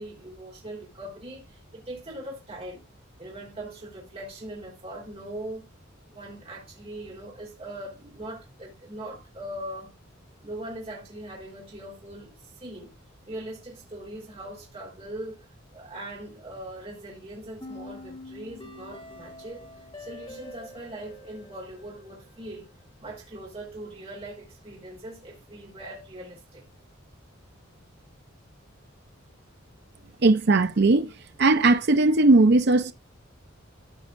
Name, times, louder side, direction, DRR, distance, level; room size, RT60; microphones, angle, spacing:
voice 1, 0.0-2.9 3.2-5.7 6.1-9.9 10.4-12.9 13.3-19.7 20.0-22.7 23.0-26.7, right 1 dB, 30° right, 3.7 m, -40 dB
sound 1, 17.6-22.6, left 2 dB, 25° left, 1.3 m, -45 dB
voice 2, 30.2-31.1 31.4-32.9, right 2 dB, 55° right, 0.6 m, -18 dB
14.5 x 5.5 x 2.5 m
head